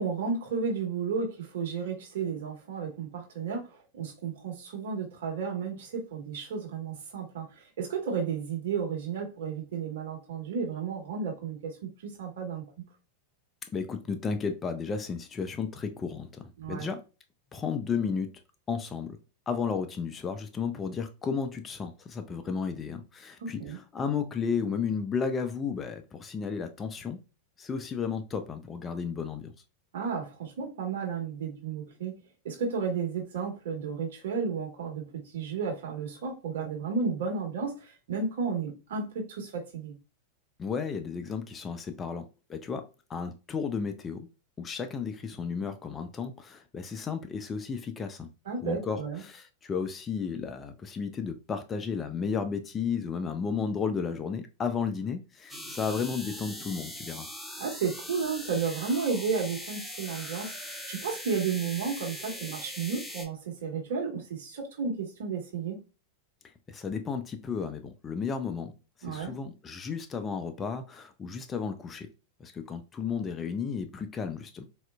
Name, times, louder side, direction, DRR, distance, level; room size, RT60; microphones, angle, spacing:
voice 1, 0.0-12.6 16.6-16.9 23.4-23.8 29.9-32.1 32.4-39.9 48.4-49.2 57.6-65.8 69.0-69.3, right 5 dB, 60° right, 1.2 m, -33 dB
voice 2, 13.7-17.0 17.5-18.3 18.7-19.2 19.5-27.2 27.6-29.5 40.6-42.8 43.1-44.3 44.6-48.3 48.6-57.3 66.7-68.7 69.0-72.1 72.4-74.6, left 6 dB, 20° left, 0.5 m, -33 dB
sound 1, 55.5-63.3, left 1 dB, 5° right, 0.9 m, -41 dB
4.2 x 2.4 x 2.2 m
figure-of-eight pair, 90°, 0 cm